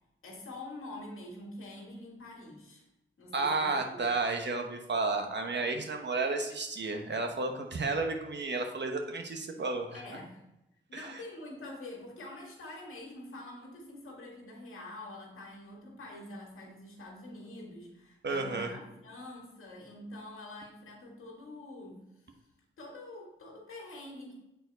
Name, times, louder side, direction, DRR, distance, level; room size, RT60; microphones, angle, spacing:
voice 1, 0.2-2.8 3.2-4.1 5.6-5.8 9.9-10.4 10.9-22.3 22.8-24.3, left 1 dB, 85° left, -2 dB, 1.9 m, -46 dB
voice 2, 3.3-10.0 10.9-11.2 18.2-18.7, right 3 dB, 60° right, 4 dB, 1.1 m, -32 dB
6.9 x 4.4 x 4.0 m, 0.89 s
cardioid pair, 55°, 21 cm